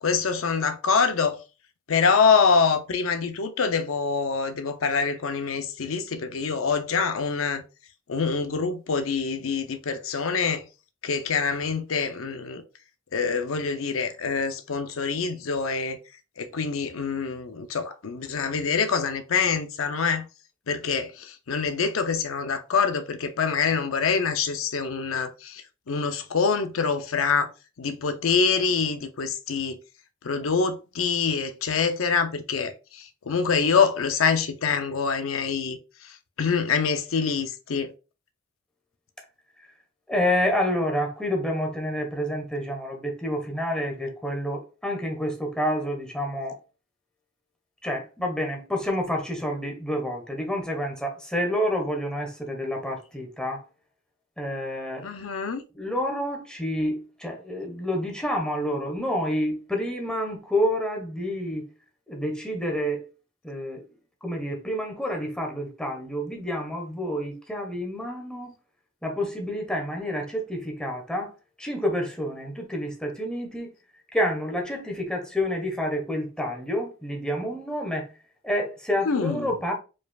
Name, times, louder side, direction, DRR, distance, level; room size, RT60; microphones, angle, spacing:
voice 1, 0.0-1.4 1.9-7.6 8.1-10.6 11.0-12.6 13.1-16.0 16.4-20.3 20.7-27.5 27.8-29.8 30.2-37.9 55.0-55.6 79.1-79.5, left 5 dB, 85° left, 0.6 m, -25 dB
voice 2, 40.1-46.6 47.8-53.6 54.4-55.1 55.7-61.7 62.1-63.1 63.4-63.9 64.2-68.5 69.0-71.3 71.6-73.7 74.1-78.1 78.4-79.7, equal, 5° left, 1.3 m, -28 dB
4.8 x 4.7 x 2.3 m
head